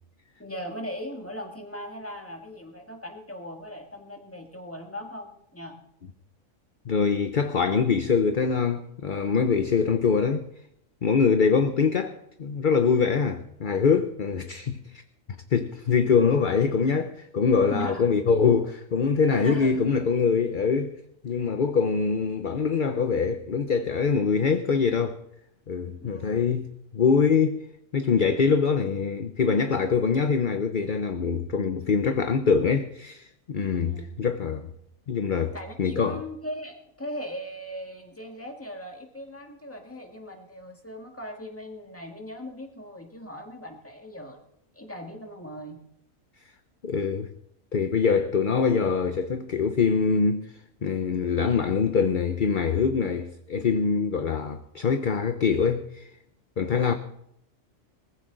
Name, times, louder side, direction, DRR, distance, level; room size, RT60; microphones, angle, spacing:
voice 1, 0.4-5.8 17.7-18.1 19.4-19.8 26.0-26.3 33.8-34.1 35.5-44.4 44.7-45.8, equal, 10° left, 1.9 m, -39 dB
voice 2, 6.9-10.5 11.0-14.8 15.5-20.9 21.2-25.2 25.7-27.6 27.9-34.7 35.1-36.2 46.8-47.3 47.7-50.5 50.8-56.1 56.6-56.9, left 5 dB, 45° left, 0.8 m, -24 dB
20.0 x 15.0 x 4.0 m
omnidirectional pair, 1.4 m